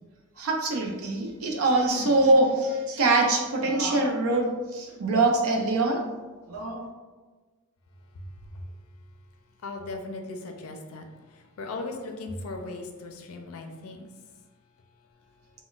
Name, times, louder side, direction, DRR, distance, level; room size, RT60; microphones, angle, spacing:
voice 1, 0.4-6.0 6.5-6.9, right 2 dB, 85° right, 1 dB, 0.5 m, -24 dB
voice 2, 9.6-11.0 11.6-14.0, left 3 dB, 80° left, 4 dB, 0.4 m, -37 dB
3.7 x 2.1 x 2.4 m, 1.3 s
head